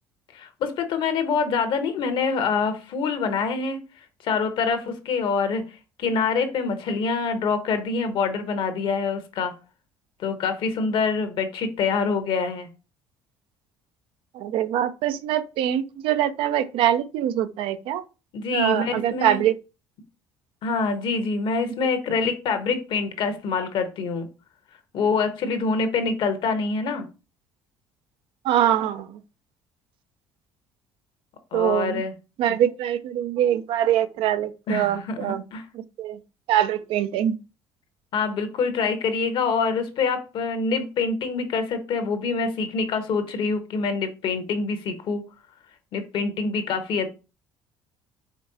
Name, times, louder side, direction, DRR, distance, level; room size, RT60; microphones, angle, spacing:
voice 1, 0.3-3.8 4.2-5.6 6.0-9.5 10.2-12.7 18.3-19.4 20.6-24.3 24.9-27.1 31.5-32.1 34.7-35.6 38.1-45.2 45.9-47.1, left 5 dB, 65° left, 1.0 m, -25 dB
voice 2, 14.3-18.0 18.5-19.5 28.4-29.2 31.5-32.0 32.4-35.4 35.7-36.2 36.5-37.4, right 11 dB, 70° right, 0.5 m, -23 dB
5.1 x 3.5 x 2.7 m
supercardioid pair, 70°, 9 cm